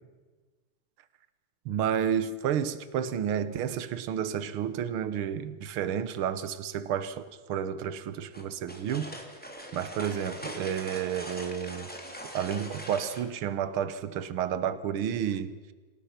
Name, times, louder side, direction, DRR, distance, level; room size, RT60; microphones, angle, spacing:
voice 1, 1.6-9.2 9.7-11.9 12.3-15.5, right 9 dB, 70° right, 1.3 m, -31 dB
sound 1, 8.3-13.3, equal, 5° left, 2.6 m, -42 dB
27.5 x 18.5 x 5.9 m
omnidirectional pair, 3.8 m